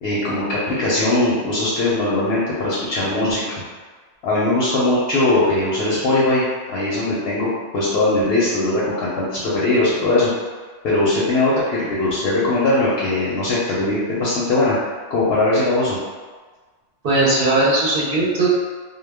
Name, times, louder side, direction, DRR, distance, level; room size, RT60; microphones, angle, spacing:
voice 1, 0.0-3.4 4.2-6.4 6.7-10.3 10.8-14.7 15.1-16.0, left 2 dB, 65° left, -7 dB, 0.7 m, -20 dB
voice 2, 17.0-18.5, right 2 dB, 55° right, -6 dB, 0.7 m, -18 dB
2.1 x 2.1 x 3.3 m, 1.4 s
omnidirectional pair, 1.3 m